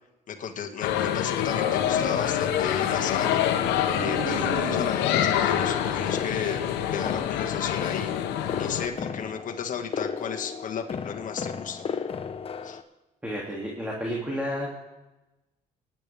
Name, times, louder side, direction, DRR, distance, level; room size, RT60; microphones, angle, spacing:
voice 1, 0.3-3.4 4.0-6.6 6.9-8.1 8.6-11.9 12.6-12.8, left 7 dB, 50° left, 3 dB, 1.8 m, -34 dB
sound 1, 0.8-8.9, left 10 dB, 90° left, 1.1 m, -26 dB
sound 2, 3.9-5.2 5.8-6.7, right 7 dB, 90° right, 2.5 m, -37 dB
sound 3, 5.1-12.8, left 6 dB, 35° left, 0.9 m, -35 dB
voice 2, 13.2-14.7, equal, 10° right, -3 dB, 2.7 m, -31 dB
24.5 x 10.5 x 3.6 m, 1.0 s
cardioid pair, 110°, 17 cm